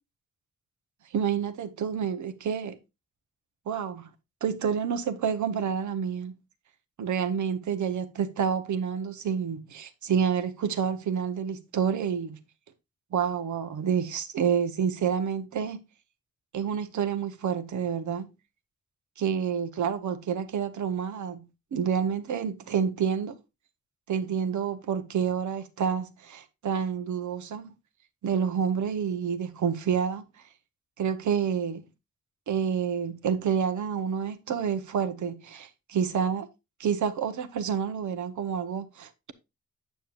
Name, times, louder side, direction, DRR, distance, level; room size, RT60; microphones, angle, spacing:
voice 1, 1.1-2.8 3.7-4.1 4.4-6.4 7.0-12.4 13.1-15.8 16.5-18.3 19.2-21.4 21.7-23.3 24.1-27.7 28.2-30.2 31.0-31.9 32.5-36.4 36.8-39.3, right 7 dB, 75° right, 1.0 m, -28 dB
8.9 x 7.2 x 2.4 m
cardioid pair, 60°, 30 cm